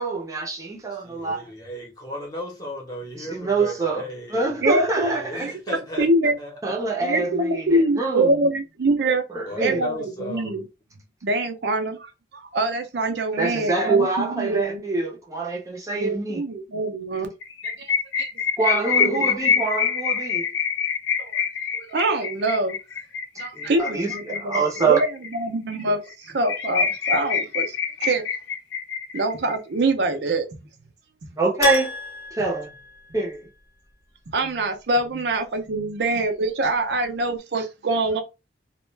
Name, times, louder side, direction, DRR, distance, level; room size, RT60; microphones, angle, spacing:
voice 1, 0.0-1.5 3.1-5.5 6.6-8.3 9.3-9.8 13.4-16.4 18.6-20.4 23.5-25.0 31.4-32.0 32.3-32.7 33.1-33.5, right 4 dB, 20° right, 0.6 m, -25 dB
voice 2, 1.0-6.0 6.4-6.6 9.4-10.6, left 1 dB, 20° left, 0.9 m, -35 dB
voice 3, 4.6-6.4 7.0-9.2 9.6-10.6 11.2-14.8 15.9-17.3 17.6-18.3 19.0-19.6 21.2-21.4 21.7-22.8 23.4-25.0 25.3-28.2 29.1-30.5 34.3-38.2, right 2 dB, 65° right, 0.5 m, -25 dB
sound 1, 17.4-25.4 25.7-25.8 26.1-26.2 26.4-29.6, left 7 dB, 85° left, 0.5 m, -25 dB
Keyboard (musical), 31.6-33.7 33.9-34.0 36.7-36.8 37.0-37.1, left 1 dB, 55° left, 0.7 m, -29 dB
2.3 x 2.1 x 3.1 m
head